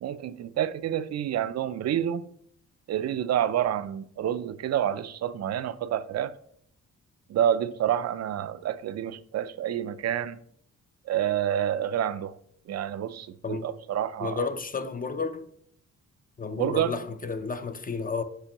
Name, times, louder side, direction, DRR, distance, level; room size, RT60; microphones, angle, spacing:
voice 1, 0.0-2.2 2.9-6.3 7.3-10.4 11.1-12.4 12.7-14.5 16.6-16.9, right 10 dB, 55° right, 0.4 m, -28 dB
voice 2, 14.2-15.5 16.4-18.2, left 4 dB, 30° left, 0.5 m, -32 dB
6.7 x 5.0 x 2.9 m
cardioid pair, 100°, 31 cm